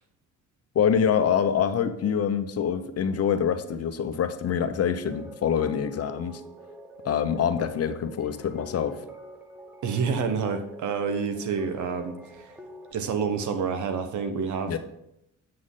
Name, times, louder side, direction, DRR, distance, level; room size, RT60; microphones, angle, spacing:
voice 1, 0.7-6.4 7.0-9.0 14.7-14.8, left 8 dB, 55° left, 9 dB, 0.8 m, -25 dB
sound 1, 5.1-12.9, right 1 dB, 5° right, 0.9 m, -46 dB
voice 2, 9.8-12.5 12.9-14.8, right 5 dB, 75° right, 7 dB, 1.1 m, -28 dB
7.6 x 6.2 x 3.8 m, 0.80 s
cardioid pair, 90°, 30 cm